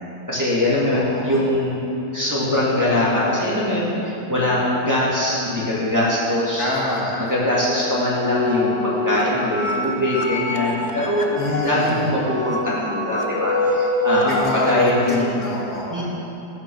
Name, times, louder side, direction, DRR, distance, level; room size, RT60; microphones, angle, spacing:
voice 1, 0.3-1.8 2.1-6.7 7.2-15.3 15.9-16.0, left 1 dB, 10° right, -8 dB, 2.5 m, -22 dB
voice 2, 0.9-1.4 6.6-7.2 11.4-12.1 14.2-16.0, left 1 dB, 55° left, -4 dB, 2.0 m, -26 dB
sound 1, 7.9-14.4, left 2 dB, 35° left, 0.7 m, -26 dB
16.0 x 6.5 x 6.4 m, 3.0 s
omnidirectional pair, 1.9 m